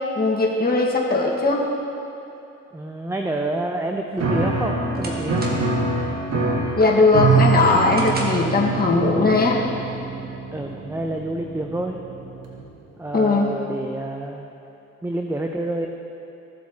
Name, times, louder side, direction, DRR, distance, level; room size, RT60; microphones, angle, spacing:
voice 1, 0.2-1.6 6.8-9.6 13.1-13.5, left 3 dB, 30° left, -3 dB, 1.6 m, -19 dB
voice 2, 2.7-5.6 10.5-12.0 13.0-14.5 15.0-15.9, right 1 dB, 10° right, 3 dB, 0.6 m, -28 dB
sound 1, 4.1-5.9 6.3-6.7 7.1-8.6, right 1 dB, 30° right, 1.7 m, -36 dB
Piano, 4.2-12.7, right 4 dB, 55° right, 1.6 m, -25 dB
15.5 x 7.3 x 2.9 m, 2.9 s
supercardioid pair, 70°, 30 cm